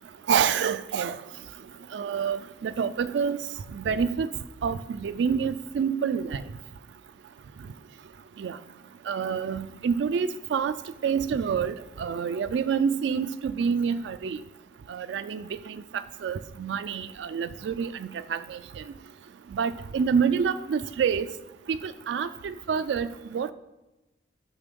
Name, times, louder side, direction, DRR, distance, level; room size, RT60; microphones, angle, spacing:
voice 1, 0.3-1.2 1.9-3.4 3.7-4.3 4.6-6.4 8.4-8.6 9.1-10.7 11.0-14.4 14.9-15.4 16.2-18.6 19.5-21.3 21.7-23.1 23.3-23.5, right 6 dB, 70° right, 0.3 m, -27 dB
7.0 x 5.7 x 5.2 m
head